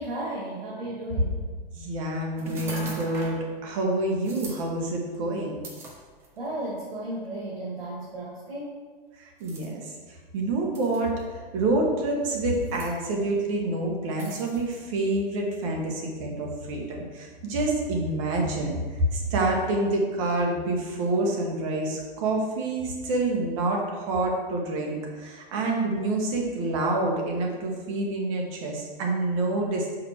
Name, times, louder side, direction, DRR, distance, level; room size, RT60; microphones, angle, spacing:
voice 1, 0.0-1.4 6.4-8.8, right 1 dB, 85° right, -5 dB, 1.9 m, -34 dB
voice 2, 1.7-5.6 9.2-9.9 10.3-11.2 11.5-29.9, right 2 dB, 35° right, 0 dB, 1.2 m, -27 dB
sound 1, 2.4-3.4 4.2-4.6 5.6-6.5 7.2-7.4 9.4-9.7 10.7-11.2 12.5-12.9 14.2-14.8, right 2 dB, 10° right, 0.4 m, -40 dB
6.0 x 5.2 x 4.3 m, 1.4 s
hypercardioid pair, 160°, 29 cm